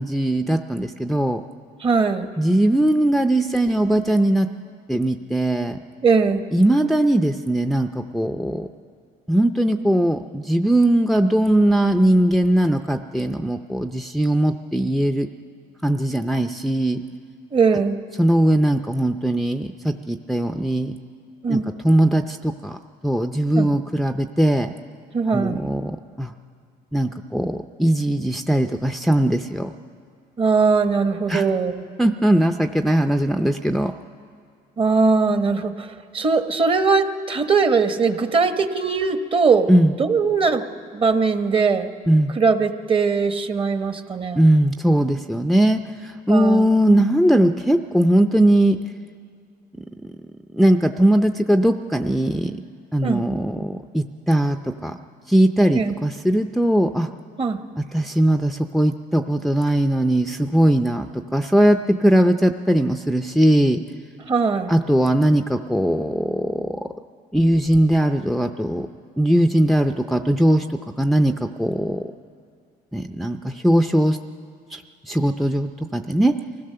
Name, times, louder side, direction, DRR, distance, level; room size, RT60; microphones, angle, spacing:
voice 1, 0.0-1.4 2.4-4.5 4.9-5.8 6.5-8.7 9.3-15.3 15.8-17.0 18.2-20.9 21.5-22.8 23.0-24.7 25.3-26.3 26.9-29.7 31.3-31.4 32.0-33.9 39.7-39.9 42.1-42.3 44.3-48.8 50.5-52.6 52.9-55.0 55.3-57.1 57.9-63.8 64.7-66.8 67.3-68.9 69.2-70.7 71.0-71.3 71.6-72.1 72.9-74.2 74.7-74.8 75.1-76.3, right 1 dB, ahead, 7 dB, 0.5 m, -19 dB
voice 2, 1.8-2.3 6.0-6.4 17.5-18.0 21.4-21.7 23.6-23.7 25.1-25.6 30.4-31.8 34.8-39.7 40.0-40.6 40.9-41.9 42.3-44.4 46.3-46.7 53.0-53.2 55.7-55.9 57.4-57.6 64.3-64.8, right 4 dB, 30° right, 9 dB, 1.0 m, -20 dB
24.5 x 16.5 x 6.7 m, 2.2 s
cardioid pair, 110°, 17 cm